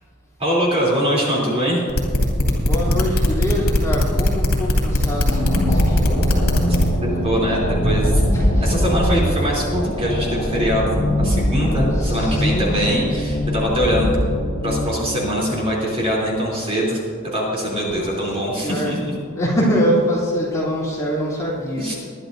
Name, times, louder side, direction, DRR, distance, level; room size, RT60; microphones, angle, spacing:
voice 1, 0.4-1.9 2.8-2.9 7.0-8.2 8.6-14.2 14.6-17.0 17.3-19.1 21.8-21.9, equal, 30° right, -4 dB, 3.3 m, -22 dB
sound 1, 1.9-6.8, left 1 dB, 75° left, 2.7 m, -18 dB
voice 2, 2.6-6.7 7.0-7.6 8.3-8.6 11.9-13.0 17.9-18.0 18.6-19.0 19.3-21.8, equal, 15° left, -7 dB, 3.1 m, -24 dB
sound 2, 5.2-16.2, equal, 50° left, 3.3 m, -22 dB
21.0 x 11.5 x 2.7 m, 2.1 s
head